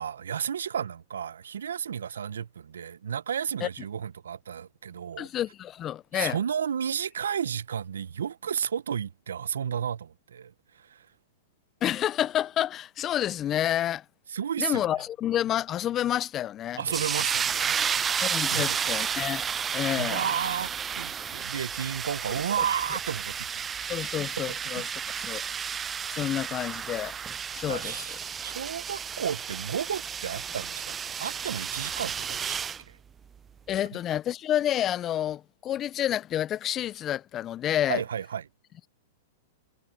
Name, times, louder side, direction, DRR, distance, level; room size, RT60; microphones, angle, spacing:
voice 1, 0.0-5.3 6.1-11.1 14.3-14.8 16.8-18.2 18.5-19.0 19.9-23.9 27.7-28.2 28.4-33.0 37.9-38.4, right 8 dB, 80° right, 1.3 m, -32 dB
voice 2, 5.2-6.4 11.8-14.0 14.6-16.8 18.2-19.4 19.7-20.3 23.9-24.8 25.2-25.4 26.1-27.2 27.5-28.1 33.7-38.0, left 11 dB, 30° left, 0.6 m, -29 dB
sound 1, 16.9-32.8, right 7 dB, 20° right, 0.4 m, -32 dB
hypercardioid pair, 110°, 0 cm